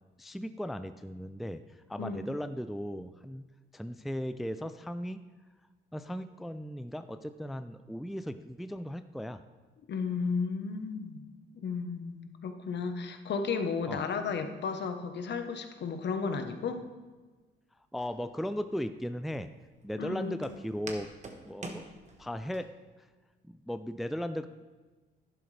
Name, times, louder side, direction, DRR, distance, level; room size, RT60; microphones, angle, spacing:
voice 1, 0.2-1.6 1.9-3.4 3.7-5.2 5.9-9.4 13.9-14.0 17.9-19.5 19.8-21.1 21.5-21.9 22.2-22.7 23.4-24.5, equal, ahead, 10 dB, 0.4 m, -37 dB
voice 2, 9.9-11.2 11.5-16.8 20.0-20.4, left 5 dB, 60° left, 7 dB, 1.1 m, -33 dB
Walk footsteps, 18.0-22.6, right 2 dB, 35° right, 1.4 m, -47 dB
11.5 x 10.5 x 3.4 m, 1.3 s
cardioid pair, 90°, 20 cm